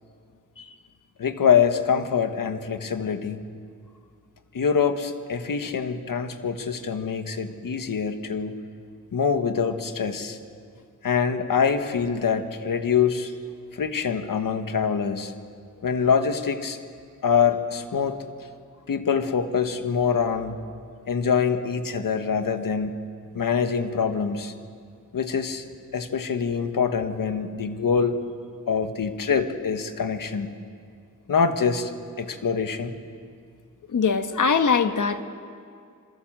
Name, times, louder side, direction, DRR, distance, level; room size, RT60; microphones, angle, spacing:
voice 1, 1.2-3.4 4.5-8.5 9.1-10.4 11.0-13.3 13.7-15.3 15.8-16.8 17.2-18.2 18.9-20.6 21.1-23.0 23.3-24.5 25.1-25.6 25.9-28.2 28.7-30.5 31.3-31.9 32.2-33.0, left 6 dB, 85° left, 7 dB, 1.6 m, -24 dB
voice 2, 33.9-35.2, left 5 dB, 70° left, 8 dB, 1.4 m, -22 dB
27.5 x 22.0 x 7.6 m, 2.3 s
wide cardioid pair, 125°, 32 cm